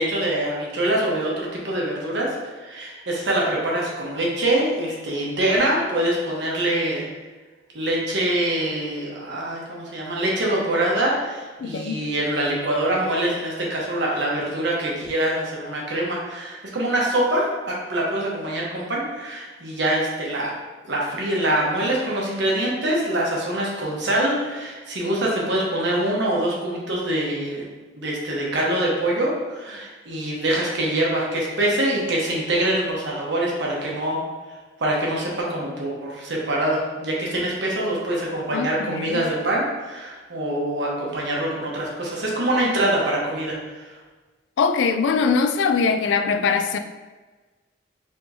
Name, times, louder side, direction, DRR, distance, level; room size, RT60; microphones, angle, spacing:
voice 1, 0.0-2.3 2.5-7.0 7.7-20.5 20.8-27.6 27.9-34.2 34.8-43.5, right 1 dB, 75° right, -3 dB, 1.0 m, -24 dB
voice 2, 11.6-12.0 38.5-39.3 44.6-46.8, left 5 dB, 85° left, 7 dB, 0.3 m, -22 dB
4.4 x 3.6 x 2.7 m, 1.3 s
head